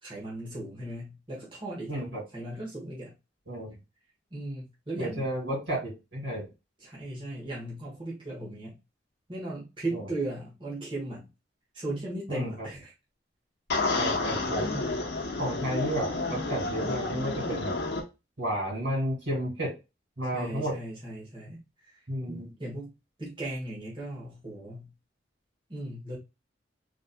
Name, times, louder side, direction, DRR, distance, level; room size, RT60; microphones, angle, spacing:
voice 1, 0.0-2.0 2.3-3.1 4.3-5.3 6.8-8.8 9.3-11.3 11.7-12.9 14.6-15.0 20.2-22.9 23.2-24.9 25.7-26.2, right 1 dB, 25° right, -6 dB, 1.4 m, -37 dB
voice 2, 1.9-2.2 3.5-3.8 5.0-6.5 9.9-10.1 12.3-12.7 14.0-14.7 15.4-17.8 18.4-19.8 20.2-20.8 22.1-22.5, right 1 dB, 75° right, -2 dB, 2.4 m, -32 dB
sound 1, 13.7-18.0, left 3 dB, 65° left, 0.8 m, -30 dB
4.0 x 3.4 x 2.2 m, 0.26 s
head